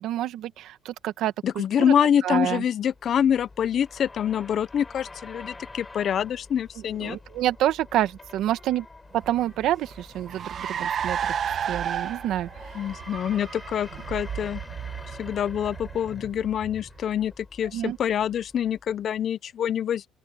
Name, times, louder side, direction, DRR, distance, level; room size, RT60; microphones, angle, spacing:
voice 1, 0.0-1.9 2.2-2.6 7.0-8.8 9.1-11.3 11.7-12.5 17.7-18.0, right 13 dB, 75° right, 1.5 m, -28 dB
voice 2, 1.4-7.2 12.7-14.6 15.2-20.1, left 9 dB, 50° left, 0.7 m, -26 dB
sound 1, 2.8-19.2, left 3 dB, 15° left, 6.5 m, -46 dB
Car, 9.2-17.0, right 8 dB, 50° right, 1.8 m, -33 dB
open air
cardioid pair, 115°, 0 cm